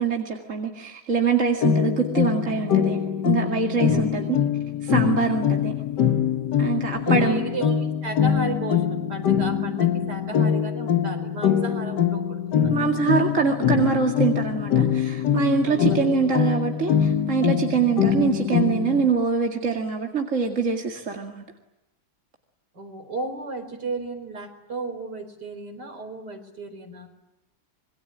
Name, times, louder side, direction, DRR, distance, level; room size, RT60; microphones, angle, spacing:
voice 1, 0.0-4.4 4.8-5.7 6.6-7.4 12.7-21.4, right 6 dB, 40° right, 2 dB, 2.5 m, -24 dB
sound 1, 1.6-19.1, left 8 dB, 60° left, 1.7 m, -23 dB
voice 2, 3.9-4.5 7.0-13.0 15.7-16.2 22.7-27.1, right 2 dB, 55° right, 7 dB, 5.0 m, -34 dB
27.0 x 23.0 x 8.8 m, 0.92 s
omnidirectional pair, 2.1 m